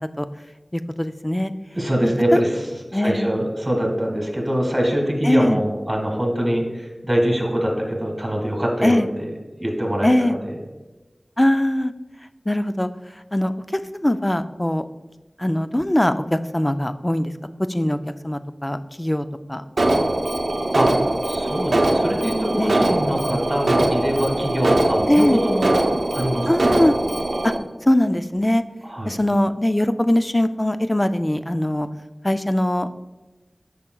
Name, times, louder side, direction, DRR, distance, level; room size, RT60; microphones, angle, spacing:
voice 1, 0.7-1.5 2.9-3.3 5.2-5.6 8.8-9.1 10.0-10.3 11.4-11.9 12.5-12.9 13.3-14.8 15.4-17.3 17.7-18.0 18.2-19.6 22.6-22.8 25.1-25.4 26.5-26.9 27.4-27.5 27.9-28.6 29.1-31.9 32.2-32.9, left 1 dB, 20° left, 11 dB, 0.3 m, -21 dB
voice 2, 1.7-9.3 9.6-10.6 20.7-21.0 21.3-25.7 26.1-26.5 28.8-29.2, equal, 25° right, 1 dB, 1.8 m, -23 dB
Alarm, 19.8-27.6, right 1 dB, 85° right, 0.6 m, -21 dB
8.5 x 5.6 x 2.3 m, 1.2 s
wide cardioid pair, 55°, 0 cm